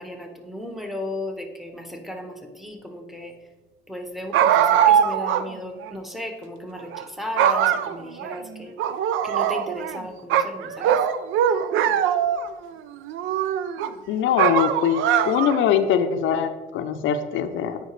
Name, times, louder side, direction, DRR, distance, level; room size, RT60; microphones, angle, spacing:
voice 1, 0.0-3.3 3.9-8.7 9.2-11.0, left 1 dB, ahead, 4 dB, 1.1 m, -35 dB
sound 1, 4.3-5.4 5.8-5.9 6.8-7.0 7.4-8.4 8.8-10.0 10.3-12.5 13.1-13.9 14.4-15.7, right 9 dB, 85° right, 0.4 m, -21 dB
voice 2, 14.1-17.8, left 8 dB, 80° left, 8 dB, 0.5 m, -22 dB
9.1 x 4.9 x 3.1 m, 1.3 s
cardioid pair, 90°, 20 cm